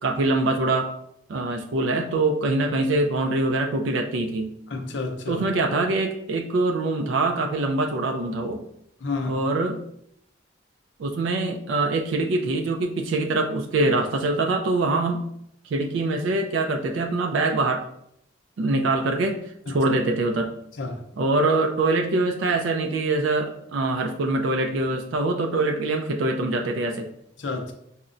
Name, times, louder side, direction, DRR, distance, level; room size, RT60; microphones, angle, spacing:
voice 1, 0.0-0.9 1.3-4.5 5.3-8.6 9.3-9.8 11.0-15.3 15.6-17.9 18.6-20.5 21.2-27.1, right 2 dB, 80° right, 0.4 m, -24 dB
voice 2, 4.7-5.4 9.0-9.4 19.7-19.8 20.8-21.0 27.4-27.7, left 3 dB, 70° left, 0.5 m, -30 dB
5.5 x 2.1 x 2.5 m
head